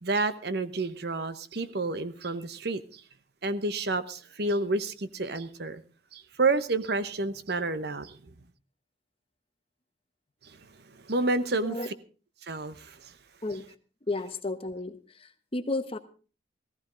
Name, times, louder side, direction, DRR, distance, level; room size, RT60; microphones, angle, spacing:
voice 1, 0.0-3.0 3.4-5.8 6.1-8.2 10.4-10.6 10.9-11.8 12.4-13.1, right 3 dB, 60° right, 0.9 m, -30 dB
voice 2, 11.5-11.9 13.4-13.6 14.1-16.0, left 2 dB, 30° left, 1.1 m, -33 dB
16.5 x 15.0 x 3.9 m
head